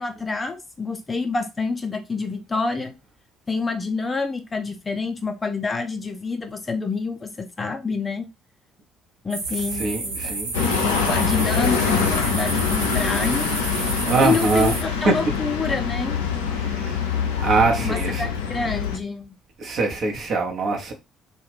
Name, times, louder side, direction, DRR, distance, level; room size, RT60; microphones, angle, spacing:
voice 1, 0.0-2.9 3.5-8.3 9.2-10.3 10.8-13.5 14.2-16.2 17.8-19.3, left 4 dB, 25° left, 0.5 m, -27 dB
sound 1, 9.3-14.8, right 3 dB, 80° right, 0.6 m, -30 dB
voice 2, 9.8-10.5 14.1-14.7 15.0-15.1 16.6-17.0 17.4-18.2 19.6-20.9, right 3 dB, 45° right, 0.8 m, -22 dB
sound 2, 10.5-19.0, left 6 dB, 75° left, 0.4 m, -24 dB
2.4 x 2.3 x 3.3 m
figure-of-eight pair, 50°, 0 cm